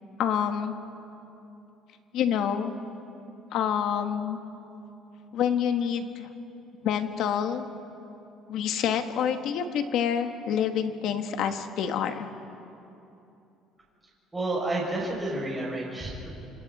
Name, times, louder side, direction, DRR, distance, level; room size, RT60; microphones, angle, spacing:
voice 1, 0.2-0.7 2.1-2.7 3.5-4.4 5.3-6.3 6.8-7.7 8.5-12.3, left 8 dB, 65° left, 7 dB, 1.5 m, -27 dB
voice 2, 14.3-16.3, right 2 dB, 15° right, -4 dB, 6.7 m, -30 dB
27.0 x 26.5 x 4.2 m, 2.8 s
cardioid pair, 125°, 0 cm